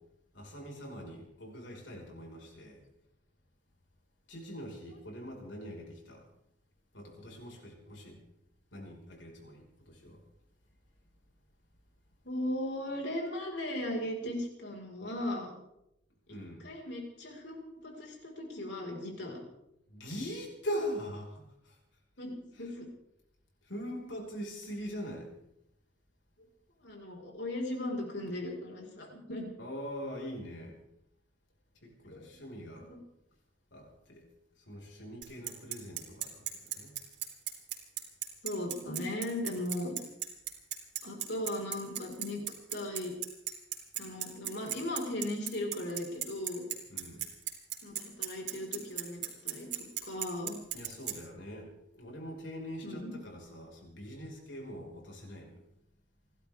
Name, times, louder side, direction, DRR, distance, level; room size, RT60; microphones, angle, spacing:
voice 1, 0.3-2.8 4.3-6.3 6.9-8.2 8.7-10.2 16.3-16.7 19.9-21.8 22.6-22.7 23.6-25.3 29.6-30.8 31.8-32.9 33.7-34.3 34.6-37.0 46.9-47.3 50.7-55.6, equal, 85° left, 0 dB, 5.3 m, -42 dB
voice 2, 12.2-15.5 16.3-16.4 16.6-19.4 22.2-22.9 26.8-29.5 32.1-32.3 32.8-33.0 38.4-39.9 41.0-42.4 42.7-43.1 43.9-46.6 47.8-50.6 52.8-53.1, left 1 dB, 65° left, 0 dB, 5.0 m, -37 dB
Bicycle, 35.2-51.1, right 11 dB, 65° right, 3.2 m, -36 dB
30.0 x 12.5 x 3.6 m, 0.82 s
head